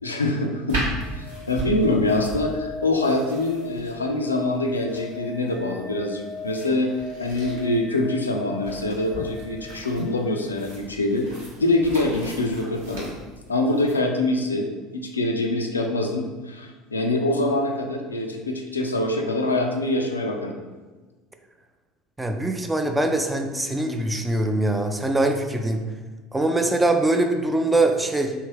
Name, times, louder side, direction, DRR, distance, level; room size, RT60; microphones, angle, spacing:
voice 1, 0.0-0.8 1.1-6.9 7.2-11.3 11.6-13.1 13.5-14.7 14.9-20.6, left 2 dB, 85° left, 2 dB, 0.3 m, -24 dB
sound 1, 0.7-14.0, right 1 dB, 75° right, 1.2 m, -37 dB
sound 2, 0.8-10.6 12.9-13.0, left 4 dB, 50° right, 0.9 m, -40 dB
voice 2, 22.2-25.8 26.3-28.3, right 2 dB, 10° right, 5 dB, 0.4 m, -22 dB
3.2 x 2.8 x 3.1 m, 1.3 s
figure-of-eight pair, 70°, 0 cm